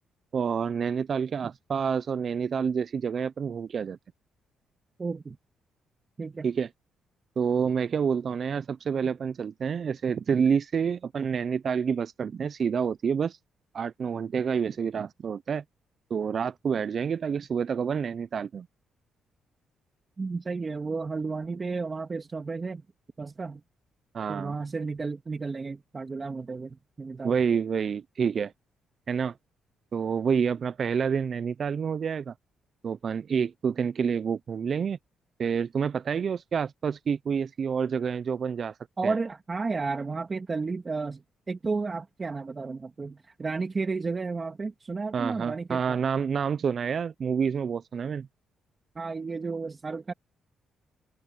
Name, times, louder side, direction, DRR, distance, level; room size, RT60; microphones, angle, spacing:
voice 1, 0.3-4.0 6.4-6.7 7.4-13.4 13.7-15.6 16.1-18.7 24.1-24.5 27.2-28.5 29.1-29.3 29.9-32.3 32.8-35.0 35.4-38.7 39.0-39.1 45.1-48.3, right 6 dB, 50° right, 0.4 m, -28 dB
voice 2, 5.0-5.4 6.2-6.5 20.2-22.8 23.2-23.6 24.3-27.4 39.0-41.2 41.5-46.0 49.0-50.1, right 4 dB, 30° right, 2.1 m, -32 dB
open air
cardioid pair, 90°, 0 cm